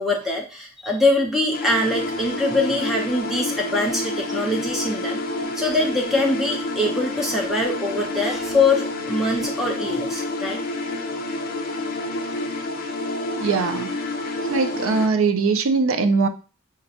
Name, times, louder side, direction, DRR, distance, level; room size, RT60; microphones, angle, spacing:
voice 1, 0.0-5.2 5.5-10.6, left 2 dB, ahead, -1 dB, 0.6 m, -23 dB
sound 1, 1.5-15.1, left 2 dB, 45° left, 0.5 m, -28 dB
voice 2, 13.3-14.0 14.5-16.3, right 4 dB, 80° right, 8 dB, 0.4 m, -21 dB
5.0 x 2.1 x 2.7 m, 0.34 s
head